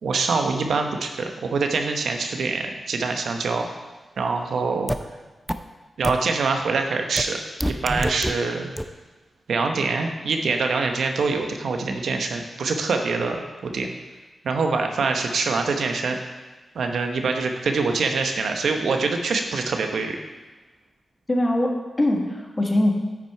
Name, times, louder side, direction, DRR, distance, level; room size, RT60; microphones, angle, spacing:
voice 1, 0.0-3.7 4.2-4.9 6.0-7.4 7.6-8.7 9.5-13.9 14.4-16.2 16.7-20.2, right 4 dB, 90° right, 4 dB, 0.9 m, -24 dB
sound 1, 4.9-5.0 5.5-5.6 6.0-6.1 7.2-7.3 7.6-8.3 8.8-8.9, equal, ahead, 0.5 m, -24 dB
voice 2, 21.3-22.9, left 1 dB, 30° left, 1 dB, 1.4 m, -22 dB
9.4 x 6.0 x 4.5 m, 1.2 s
cardioid pair, 65°, 0 cm